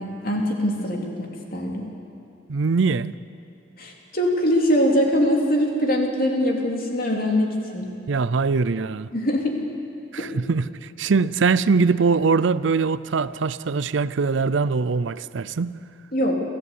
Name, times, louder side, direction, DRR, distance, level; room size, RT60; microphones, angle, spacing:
voice 1, 0.0-1.9 3.8-7.9 9.1-9.6 10.2-10.3 16.1-16.4, equal, 50° left, 3.0 m, -23 dB
voice 2, 2.5-3.1 8.1-9.1 10.1-15.8, right 4 dB, 80° right, 0.5 m, -22 dB
28.0 x 14.0 x 8.4 m
head